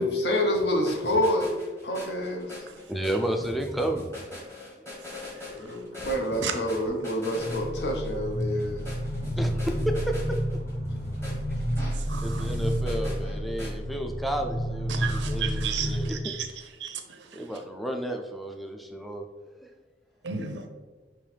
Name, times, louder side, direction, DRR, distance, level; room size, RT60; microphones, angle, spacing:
voice 1, 0.0-1.5 1.8-2.5 5.5-8.9, left 1 dB, 70° left, 0.9 m, -27 dB
sound 1, 0.5-13.7, left 1 dB, 15° left, 1.2 m, -41 dB
voice 2, 2.9-4.1 4.8-4.9 9.4-10.6 12.2-16.3 17.3-19.3 19.6-19.7, right 1 dB, ahead, 0.3 m, -32 dB
sound 2, 7.3-16.1, equal, 45° left, 1.1 m, -30 dB
voice 3, 12.0-12.5 14.9-16.5 16.8-17.5 20.2-20.7, right 7 dB, 90° right, 0.6 m, -33 dB
5.4 x 3.0 x 3.3 m
head